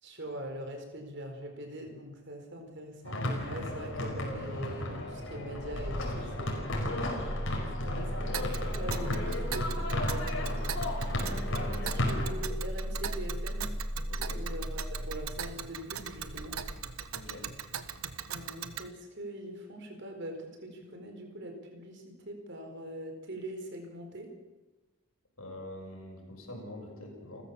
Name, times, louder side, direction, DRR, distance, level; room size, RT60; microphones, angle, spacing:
voice 1, 0.0-6.7 7.8-10.5 11.1-13.7 14.3-16.6 18.3-24.3, right 1 dB, 55° right, 4 dB, 4.7 m, -42 dB
sound 1, 3.0-12.3, left 1 dB, 65° left, 5.1 m, -34 dB
Engine starting, 5.3-17.5, equal, ahead, 2.5 m, -37 dB
Tick, 8.3-18.9, right 8 dB, 90° right, 1.3 m, -41 dB
voice 2, 14.1-14.4 17.1-17.5 25.4-27.4, left 1 dB, 85° left, 2 dB, 6.4 m, -45 dB
30.0 x 14.5 x 7.2 m, 1.1 s
head